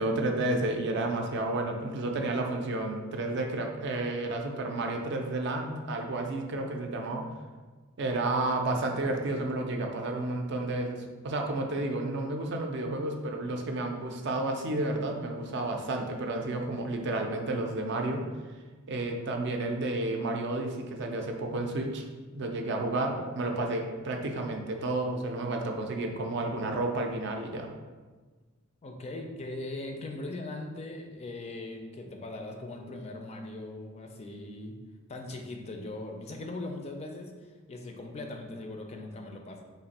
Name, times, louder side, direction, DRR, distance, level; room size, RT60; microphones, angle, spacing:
voice 1, 0.0-7.3 8.0-18.2 18.9-22.0 22.3-27.7, right 2 dB, 55° right, 3 dB, 0.4 m, -31 dB
voice 2, 28.8-34.8 35.1-39.6, left 2 dB, 30° left, 3 dB, 0.4 m, -40 dB
3.3 x 2.5 x 4.1 m, 1.3 s
head